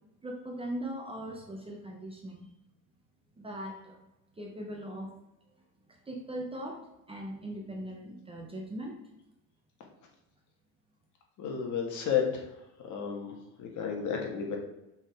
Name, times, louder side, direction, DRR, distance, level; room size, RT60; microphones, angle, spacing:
voice 1, 0.2-2.5 3.4-4.1 4.4-5.1 6.1-9.0, right 1 dB, 15° right, 1 dB, 0.9 m, -40 dB
voice 2, 11.4-12.4 12.8-13.3 13.6-14.6, left 7 dB, 50° left, 1 dB, 1.7 m, -31 dB
5.6 x 5.4 x 4.5 m, 0.90 s
cardioid pair, 155°, 38 cm